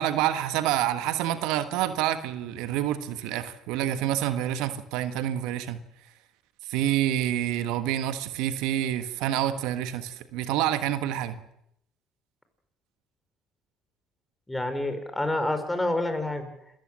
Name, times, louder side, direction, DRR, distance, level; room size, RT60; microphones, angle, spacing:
voice 1, 0.0-5.8 6.7-11.4, right 12 dB, 75° right, 10 dB, 1.4 m, -27 dB
voice 2, 14.5-16.5, left 1 dB, 10° left, 8 dB, 4.7 m, -28 dB
27.0 x 14.5 x 7.5 m, 0.74 s
supercardioid pair, 70°, 0 cm